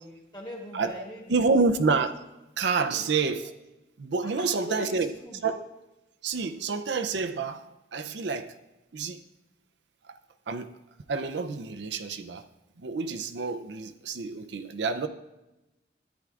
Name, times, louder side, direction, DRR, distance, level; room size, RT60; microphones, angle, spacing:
voice 1, 0.0-1.5 2.8-3.0 4.2-5.4, equal, 25° left, -1 dB, 1.9 m, -41 dB
voice 2, 1.3-2.2 2.6-3.5 4.0-5.1 5.4-5.6 6.2-7.7 7.9-8.5 8.9-9.2 10.1-10.2 10.5-10.7 11.1-12.4 12.8-15.1, right 4 dB, 70° right, 8 dB, 0.5 m, -28 dB
14.0 x 9.7 x 2.4 m, 0.99 s
head